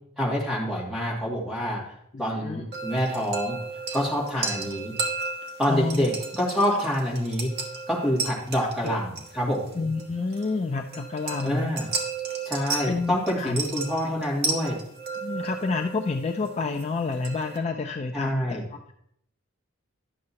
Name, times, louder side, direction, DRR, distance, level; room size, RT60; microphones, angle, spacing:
voice 1, 0.2-1.9 2.2-3.6 3.9-4.9 5.6-7.5 7.9-9.7 11.4-11.9 12.4-14.8 18.1-18.6, equal, ahead, -5 dB, 2.3 m, -26 dB
voice 2, 2.1-2.6 4.3-4.5 5.7-6.0 9.8-11.8 12.9-13.6 15.2-18.6, left 3 dB, 30° left, 4 dB, 0.4 m, -29 dB
sound 1, 2.7-17.6, right 4 dB, 50° right, 1.3 m, -34 dB
11.0 x 6.5 x 2.8 m, 0.72 s
head